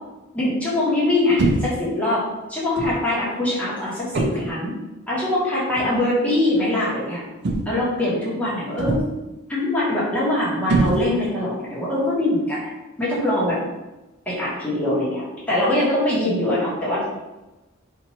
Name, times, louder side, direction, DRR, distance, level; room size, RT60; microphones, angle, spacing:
voice 1, 0.3-4.7 5.1-7.2 7.7-9.0 9.5-12.6 13.0-13.6 14.3-17.1, left 1 dB, 5° left, -8 dB, 1.1 m, -23 dB
sound 1, 1.4-1.9 2.8-3.1 4.1-4.6 5.7-6.0 7.4-7.9 8.8-9.3 10.7-11.4, right 2 dB, 55° right, 0.5 m, -23 dB
2.9 x 2.6 x 4.2 m, 1.1 s
head